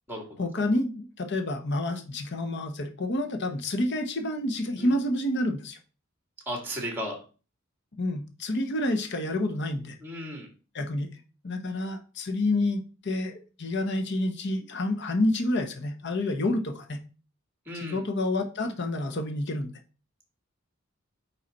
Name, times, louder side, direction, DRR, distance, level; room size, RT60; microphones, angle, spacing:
voice 1, 0.4-5.8 8.0-10.0 10.7-11.1 11.4-17.0 17.7-19.7, left 1 dB, 55° left, 6 dB, 0.9 m, -28 dB
voice 2, 6.5-7.2 10.0-10.5 17.7-18.0, equal, 10° right, 1 dB, 2.0 m, -34 dB
5.1 x 4.8 x 4.1 m, 0.34 s
head